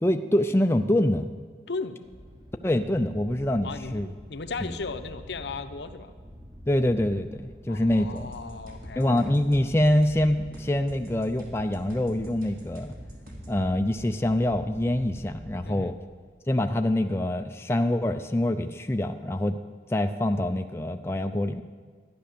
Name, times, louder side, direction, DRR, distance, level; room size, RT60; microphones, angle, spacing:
voice 1, 0.0-1.3 2.6-4.1 4.6-4.7 6.7-8.3 9.0-12.9 13.5-15.9 16.5-19.6 19.9-21.6, left 1 dB, 15° left, 6 dB, 0.4 m, -25 dB
voice 2, 1.7-2.0 3.6-4.0 4.3-6.1 7.7-9.3 15.6-15.9, left 4 dB, 75° left, 9 dB, 0.8 m, -36 dB
sound 1, 2.0-16.3, equal, 20° right, 1.1 m, -46 dB
sound 2, 8.2-13.6, equal, 50° right, 2.4 m, -47 dB
12.5 x 10.0 x 6.8 m, 1.5 s
head